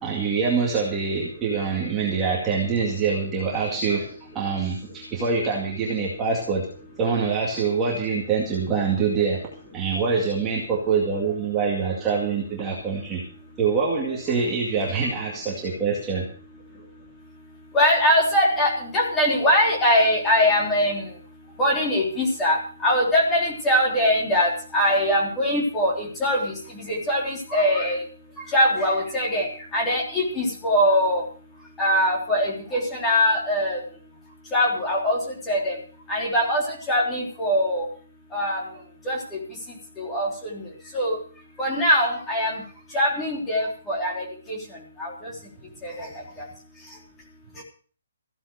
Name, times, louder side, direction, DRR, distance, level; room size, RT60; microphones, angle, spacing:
voice 1, 0.0-4.1 4.3-6.7 7.0-9.4 9.7-13.2 13.6-16.3, right 5 dB, 10° right, -4 dB, 2.2 m, -25 dB
voice 2, 17.7-21.0 21.6-28.0 28.5-31.2 31.8-33.8 34.5-35.2 35.5-35.7 36.1-36.6 36.9-37.8 38.3-38.6 39.0-39.2 40.0-40.3 40.5-40.6 40.9-41.2 41.6-42.6 42.9-44.6 45.0-45.1 45.8-46.1, equal, 5° left, -2 dB, 3.4 m, -22 dB
15.5 x 9.8 x 6.5 m, 0.42 s
hypercardioid pair, 180°, 0 cm